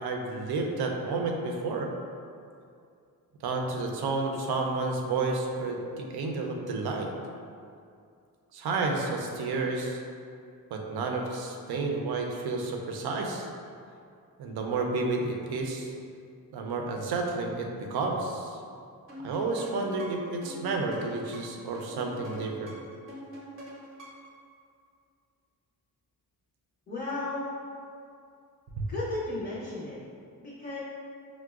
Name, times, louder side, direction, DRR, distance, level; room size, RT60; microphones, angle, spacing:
voice 1, 0.0-1.9 3.4-7.1 8.5-10.0 10.7-13.5 14.4-15.9 16.5-18.6 19.2-22.7 28.8-28.9, right 3 dB, 90° right, 2 dB, 0.5 m, -31 dB
sound 1, 19.1-24.4, equal, 35° right, 0.6 m, -44 dB
voice 2, 26.9-27.5 28.9-30.0 30.4-30.8, left 2 dB, 30° left, -7 dB, 0.5 m, -34 dB
4.6 x 2.1 x 2.3 m, 2.4 s
wide cardioid pair, 160°, 37 cm